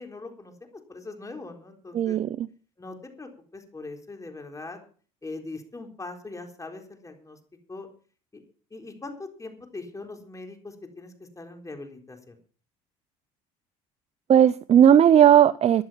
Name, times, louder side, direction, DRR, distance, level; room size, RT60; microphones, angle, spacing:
voice 1, 0.0-2.2 2.8-4.8 5.2-7.4 7.7-7.9 8.3-8.4 8.7-12.3, left 3 dB, 20° left, 3 dB, 4.0 m, -41 dB
voice 2, 1.9-2.5 14.3-15.8, right 9 dB, 40° right, 18 dB, 0.6 m, -17 dB
14.0 x 11.0 x 5.7 m, 0.42 s
hypercardioid pair, 70°, 16 cm